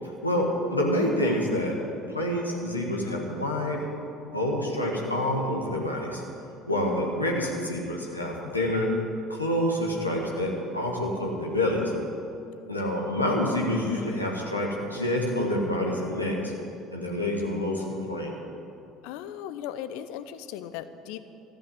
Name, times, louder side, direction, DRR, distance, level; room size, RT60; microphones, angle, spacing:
voice 1, 0.0-1.8 2.1-3.8 4.2-6.2 6.6-8.9 9.3-11.9 12.7-16.5 16.9-18.3, left 1 dB, 90° left, -2 dB, 1.6 m, -27 dB
voice 2, 6.7-7.1 19.0-21.2, left 10 dB, 60° left, 12 dB, 0.7 m, -37 dB
14.0 x 8.8 x 7.9 m, 2.6 s
figure-of-eight pair, 60°, 0 cm